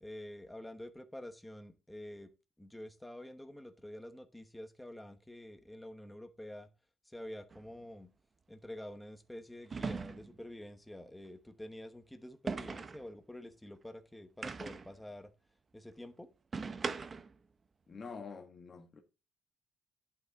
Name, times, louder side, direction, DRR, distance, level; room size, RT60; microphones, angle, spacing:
voice 1, 0.0-2.3 2.6-6.7 7.0-8.1 8.5-15.3 15.7-16.3, left 1 dB, 5° left, 1.1 m, -48 dB
sound 1, 7.5-7.7 9.7-10.4 12.5-13.1 14.4-15.0 16.5-17.4, right 4 dB, 30° right, 0.6 m, -39 dB
voice 2, 17.9-19.0, left 5 dB, 30° left, 1.5 m, -46 dB
11.0 x 5.8 x 4.0 m
cardioid pair, 140°, 0 cm